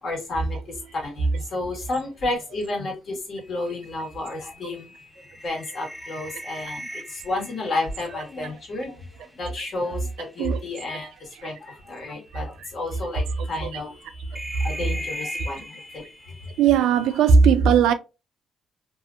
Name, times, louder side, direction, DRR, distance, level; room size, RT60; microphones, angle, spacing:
voice 1, 0.0-4.9 5.4-13.9 14.6-16.0 16.4-16.5, left 2 dB, 55° left, 1.3 m, -31 dB
sound 1, 3.4-9.8 10.1-10.6 11.7-11.8 12.3-12.4 13.3-17.3, equal, 5° left, 0.4 m, -40 dB
voice 2, 16.6-17.9, right 6 dB, 85° right, 0.4 m, -17 dB
2.6 x 2.4 x 2.4 m
cardioid pair, 90°, 0 cm